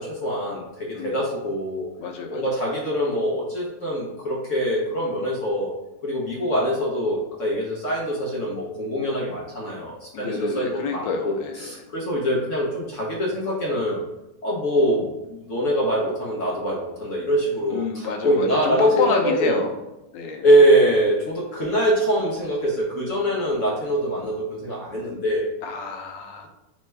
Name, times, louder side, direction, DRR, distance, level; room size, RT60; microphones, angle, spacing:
voice 1, 0.0-1.9 2.3-5.7 6.0-14.0 14.4-19.6 20.4-25.5, right 1 dB, 55° left, -3 dB, 0.9 m, -23 dB
voice 2, 2.0-2.4 10.1-11.8 17.7-19.7 20.1-20.4 25.6-26.5, left 4 dB, 90° left, 4 dB, 1.3 m, -28 dB
3.4 x 3.2 x 3.2 m, 0.95 s
omnidirectional pair, 1.9 m